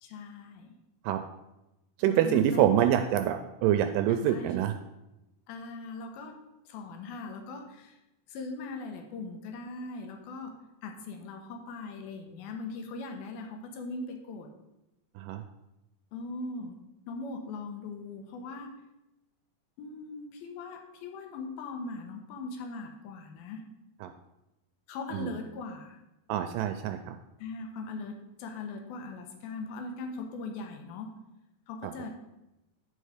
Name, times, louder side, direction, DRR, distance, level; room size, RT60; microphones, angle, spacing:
voice 1, 0.0-0.7 2.1-2.7 4.1-4.6 5.5-6.4 6.7-8.0 8.3-10.6 10.8-14.5 16.1-16.8 17.1-18.7 19.8-23.7 24.9-26.0 27.4-31.1 31.7-32.2, left 3 dB, 90° left, 4 dB, 2.9 m, -40 dB
voice 2, 2.0-4.7 15.2-15.4 24.0-24.1 25.1-25.3 26.3-27.2, right 11 dB, 80° right, 7 dB, 2.0 m, -26 dB
9.6 x 5.4 x 5.0 m, 0.94 s
omnidirectional pair, 4.2 m